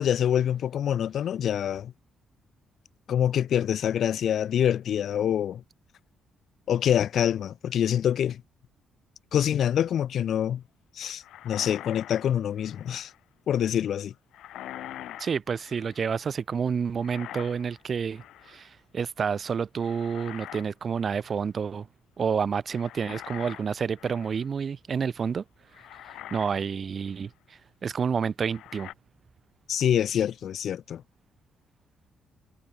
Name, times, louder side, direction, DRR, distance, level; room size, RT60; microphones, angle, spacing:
voice 1, 0.0-1.9 3.1-5.6 6.7-8.4 9.3-10.6 11.0-13.1 13.5-14.1 29.7-31.0, left 9 dB, 65° left, 0.9 m, -25 dB
sound 1, 11.2-13.2 14.3-16.1 17.0-17.8 18.1-18.6 19.8-20.7 21.0-21.2 22.7-24.5 25.2-25.3 25.7-26.6 27.0-27.2 28.5-28.9, left 13 dB, 80° left, 2.0 m, -44 dB
voice 2, 15.2-21.9 22.2-25.4 26.3-27.3 27.8-28.9, right 6 dB, 45° right, 0.7 m, -29 dB
cardioid pair, 90°, 0 cm